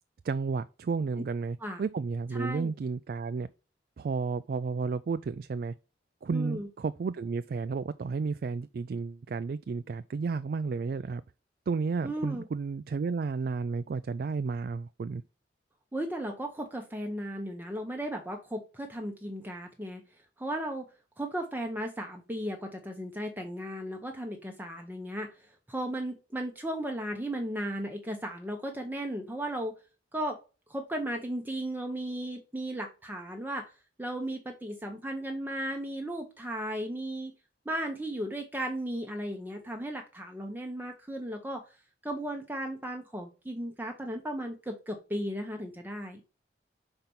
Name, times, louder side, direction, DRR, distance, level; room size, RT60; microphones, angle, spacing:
voice 1, 0.2-3.5 4.0-5.7 6.2-11.2 11.7-15.2, right 4 dB, 55° right, 0.3 m, -32 dB
voice 2, 2.3-2.7 6.3-6.7 12.0-12.4 15.9-20.0 20.4-20.8 21.2-25.3 25.7-29.7 30.1-30.4 30.7-33.7 34.0-37.3 37.6-41.6 42.0-46.2, right 1 dB, 10° right, 0.8 m, -35 dB
5.8 x 4.4 x 5.3 m
head